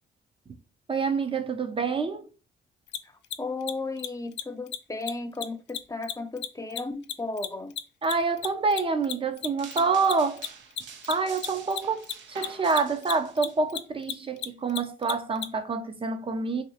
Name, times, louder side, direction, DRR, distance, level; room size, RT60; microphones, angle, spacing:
voice 1, 0.9-2.3 8.0-10.5 11.1-16.6, right 4 dB, 25° right, 0.6 m, -27 dB
Mechanisms, 2.9-3.0 3.2-3.4 3.6-3.7 4.0-4.1 4.3-4.4 4.7-4.8 5.0-5.1 5.4-8.1 8.4-15.5, left 10 dB, 65° left, 0.4 m, -33 dB
voice 2, 3.0-7.7, left 3 dB, 15° left, 0.5 m, -35 dB
sound 1, 9.6-13.6, right 6 dB, 65° right, 0.6 m, -46 dB
3.0 x 2.7 x 2.8 m
cardioid pair, 90°, 20 cm